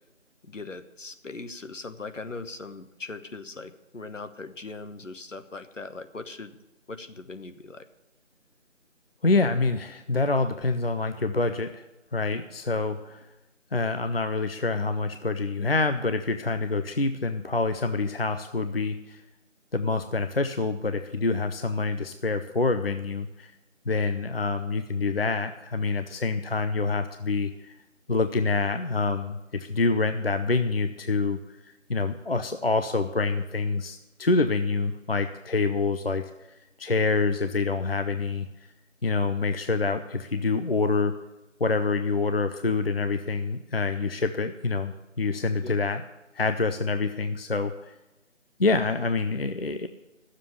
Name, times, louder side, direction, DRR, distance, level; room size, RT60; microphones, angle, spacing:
voice 1, 0.4-6.6 6.9-7.9 45.6-45.8, left 3 dB, 75° left, 9 dB, 1.2 m, -40 dB
voice 2, 9.2-11.8 12.1-13.3 13.7-19.2 19.7-23.5 23.9-27.7 28.1-31.4 31.9-36.2 36.8-38.5 39.0-41.1 41.6-46.0 46.3-47.9 48.6-49.9, left 3 dB, 50° left, 8 dB, 0.6 m, -26 dB
10.5 x 7.4 x 8.4 m, 1.0 s
figure-of-eight pair, 175°, 38 cm